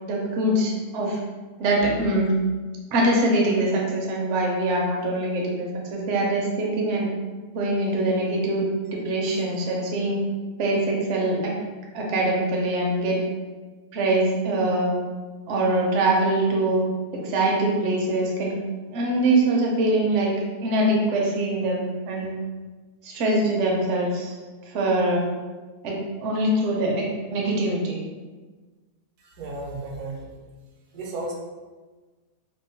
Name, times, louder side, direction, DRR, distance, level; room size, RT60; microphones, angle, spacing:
voice 1, 0.1-1.2 1.6-2.3 2.9-7.1 7.5-10.2 10.6-11.5 11.9-13.2 13.9-15.0 15.5-16.8 17.1-18.6 18.9-20.3 20.6-22.3 23.0-24.4 24.7-25.2 25.8-28.0, right 1 dB, 65° right, -2 dB, 0.8 m, -23 dB
voice 2, 29.2-30.3 30.9-31.3, right 2 dB, 90° right, -1 dB, 1.1 m, -34 dB
2.9 x 2.0 x 2.7 m, 1.3 s
omnidirectional pair, 1.6 m